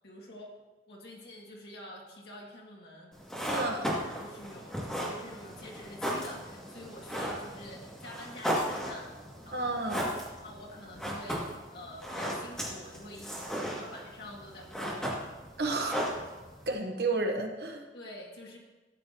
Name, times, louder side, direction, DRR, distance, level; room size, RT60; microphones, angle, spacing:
voice 1, 0.0-0.6 0.9-3.2 4.2-9.1 9.4-9.8 10.1-15.2 17.9-18.6, left 1 dB, 65° left, -2 dB, 2.3 m, -47 dB
sound 1, 3.1-16.7, equal, 5° left, 2.3 m, -36 dB
voice 2, 3.5-3.9 9.5-10.1 15.6-16.0 16.7-17.8, right 2 dB, 65° right, 3 dB, 1.3 m, -31 dB
13.5 x 8.6 x 3.0 m, 1.1 s
head